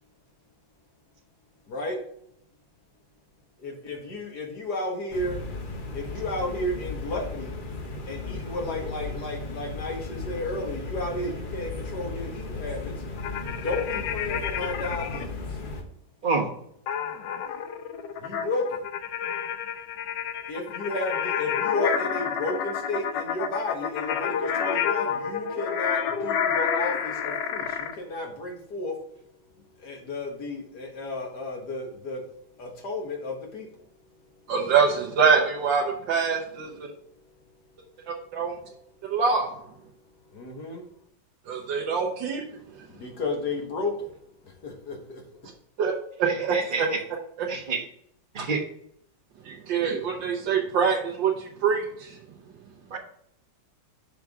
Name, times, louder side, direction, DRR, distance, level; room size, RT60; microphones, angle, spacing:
voice 1, 1.7-2.0 3.6-5.4 5.9-7.5 8.1-12.9 13.5-15.3 18.2-18.8 20.5-28.9 29.8-32.2 32.6-33.7 40.3-40.8 42.9-44.1 44.6-45.2, left 2 dB, 60° left, 1 dB, 2.0 m, -33 dB
sound 1, 5.1-15.8, left 3 dB, 40° left, 0.8 m, -36 dB
sound 2, 13.2-15.2 16.9-27.9, left 7 dB, 75° left, 1.4 m, -29 dB
voice 2, 34.5-36.7 38.3-38.5 39.1-39.5 41.5-42.4 45.8-45.9 46.2-46.9 47.4-47.5 48.4-48.5 49.4-52.2, right 5 dB, 80° right, -2 dB, 1.7 m, -24 dB
voice 3, 46.5-46.8 47.5-47.8 48.3-48.6 52.9-53.0, right 4 dB, 30° right, 2 dB, 1.1 m, -27 dB
6.9 x 5.9 x 3.6 m, 0.69 s
omnidirectional pair, 2.0 m